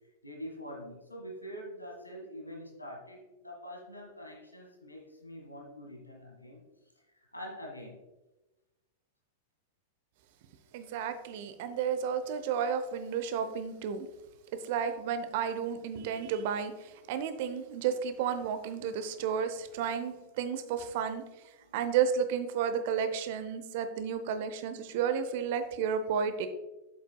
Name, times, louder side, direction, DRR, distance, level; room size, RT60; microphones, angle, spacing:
voice 1, 0.2-6.6 7.3-8.0 21.6-21.7, equal, 85° left, 0 dB, 1.5 m, -45 dB
voice 2, 10.7-14.1 14.6-21.2 21.7-26.5, right 7 dB, 50° right, 10 dB, 0.7 m, -32 dB
8.2 x 7.3 x 2.2 m, 1.0 s
figure-of-eight pair, 90°, 0 cm